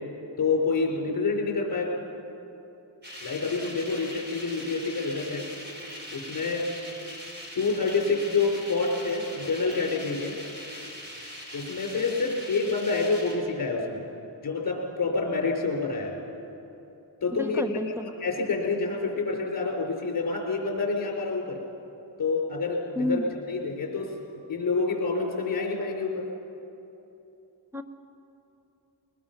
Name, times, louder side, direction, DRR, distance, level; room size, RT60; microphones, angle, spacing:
voice 1, 0.4-2.0 3.2-5.5 6.1-6.7 7.5-10.4 11.5-14.0 14.4-16.2 17.2-17.6 18.0-21.6 22.2-23.2 23.5-24.1 24.5-26.3, left 4 dB, 45° left, 0 dB, 4.4 m, -27 dB
sound 1, 3.0-13.3, equal, 25° right, 4.4 m, -41 dB
voice 2, 17.4-18.1 23.0-23.3 27.7-27.8, left 1 dB, 5° right, 8 dB, 0.8 m, -29 dB
21.0 x 20.5 x 5.9 m, 2.9 s
wide cardioid pair, 115°, 44 cm